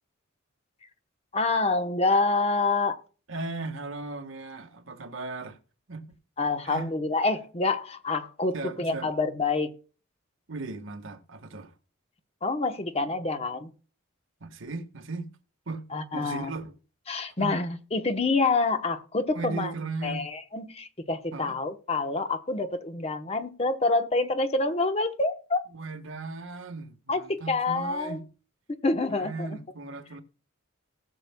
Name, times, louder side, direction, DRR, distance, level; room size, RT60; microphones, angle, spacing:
voice 1, 1.3-3.0 6.4-9.7 12.4-13.7 15.9-16.5 17.1-19.7 20.0-25.6 27.1-28.2 28.8-29.5, left 3 dB, 30° left, 0.9 m, -27 dB
voice 2, 3.3-5.6 5.9-6.1 6.6-6.9 8.5-9.1 10.5-11.7 14.4-15.3 15.7-15.8 16.1-16.7 17.4-17.6 19.3-20.3 21.3-21.6 25.7-28.2 29.1-30.2, right 3 dB, 70° right, 1.4 m, -37 dB
19.0 x 6.8 x 2.2 m
head